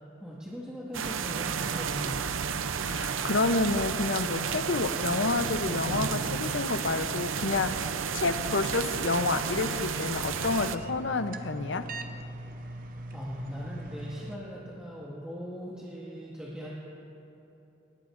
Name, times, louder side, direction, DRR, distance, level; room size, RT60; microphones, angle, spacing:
voice 1, 0.2-2.2 13.1-16.8, equal, 5° right, -8 dB, 1.8 m, -40 dB
sound 1, 0.9-10.8, right 6 dB, 90° right, 0.6 m, -32 dB
voice 2, 2.9-11.9, left 3 dB, 70° left, 9 dB, 0.7 m, -29 dB
sound 2, 9.0-14.4, right 2 dB, 45° right, 0.6 m, -42 dB
24.5 x 21.0 x 2.6 m, 3.0 s
head